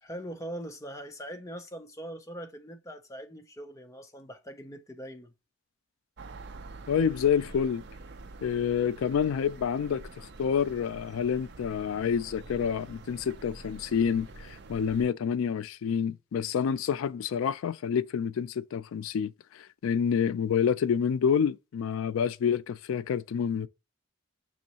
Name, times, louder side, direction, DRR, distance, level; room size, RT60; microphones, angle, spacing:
voice 1, 0.0-5.3, right 1 dB, 15° left, 0.5 m, -41 dB
sound 1, 6.2-15.1, right 3 dB, 55° right, 0.5 m, -46 dB
voice 2, 6.9-7.8 8.4-23.7, left 7 dB, 80° left, 0.3 m, -28 dB
6.2 x 3.1 x 2.8 m
head